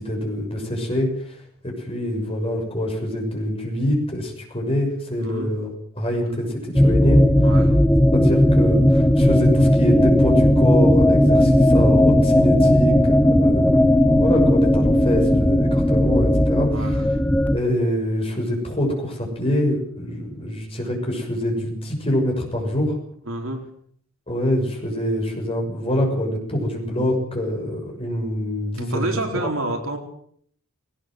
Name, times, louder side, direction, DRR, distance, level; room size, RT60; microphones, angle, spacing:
voice 1, 0.0-1.4 1.6-5.7 6.0-7.2 8.1-13.2 13.4-16.9 17.5-23.0 24.3-29.1 29.3-29.5, left 1 dB, 25° left, 1 dB, 6.5 m, -25 dB
voice 2, 5.2-5.6 7.4-7.8 16.7-17.1 23.3-23.7 28.8-30.0, right 1 dB, 65° right, 3 dB, 4.1 m, -28 dB
sound 1, 6.8-17.6, left 1 dB, 10° left, 1.0 m, -16 dB
19.5 x 18.5 x 7.7 m, 0.63 s
head